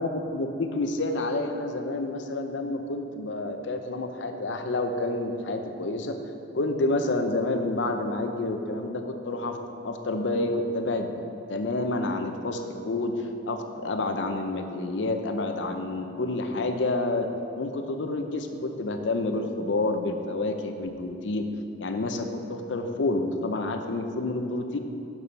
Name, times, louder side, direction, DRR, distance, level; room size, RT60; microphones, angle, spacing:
voice 1, 0.0-6.1 6.5-9.6 9.8-11.2 11.5-17.3 17.6-21.5 21.8-24.8, left 2 dB, 90° left, 6 dB, 0.7 m, -29 dB
6.9 x 6.1 x 5.4 m, 2.8 s
head